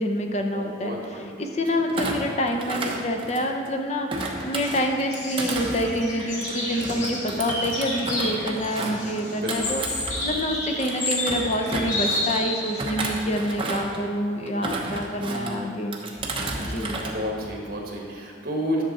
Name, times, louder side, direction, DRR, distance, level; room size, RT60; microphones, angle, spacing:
voice 1, 0.0-1.0 1.4-16.0 16.7-17.0, equal, 35° left, 4 dB, 0.6 m, -27 dB
voice 2, 0.5-1.3 1.7-1.8 8.8-9.7 15.2-15.8 16.6-18.8, equal, 50° right, -1 dB, 1.5 m, -32 dB
Thump thud, 1.9-3.7 4.1-10.5 10.8-12.4 12.8-14.0 14.5-15.5 15.9-17.1 17.4-17.8, right 2 dB, 30° right, 0.9 m, -32 dB
sound 1, 4.4-13.2, left 1 dB, 85° left, 2.1 m, -31 dB
11.0 x 6.7 x 4.2 m, 2.3 s
head